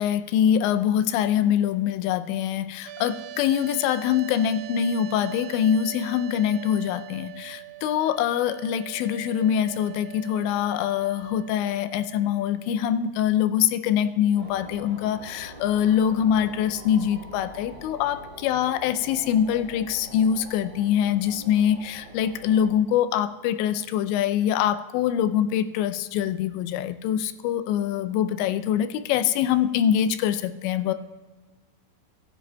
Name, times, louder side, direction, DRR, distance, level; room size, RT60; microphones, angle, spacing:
voice 1, 0.0-30.9, left 9 dB, 85° left, 10 dB, 2.7 m, -24 dB
sound 1, 2.9-12.9, right 16 dB, 85° right, 2.9 m, -42 dB
sound 2, 14.4-22.7, right 1 dB, 30° right, 1.8 m, -44 dB
18.5 x 10.0 x 2.2 m, 1.3 s
omnidirectional pair, 5.3 m